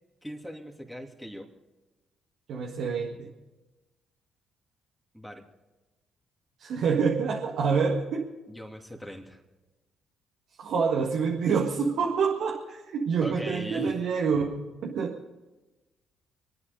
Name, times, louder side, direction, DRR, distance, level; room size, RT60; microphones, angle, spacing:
voice 1, 0.2-1.5 5.1-5.4 8.5-9.4 13.2-14.1, equal, ahead, 1 dB, 2.9 m, -40 dB
voice 2, 2.5-3.2 6.6-8.3 10.6-15.2, right 5 dB, 65° right, -1 dB, 1.7 m, -27 dB
26.0 x 9.8 x 5.2 m, 1.1 s
hypercardioid pair, 45°, 0 cm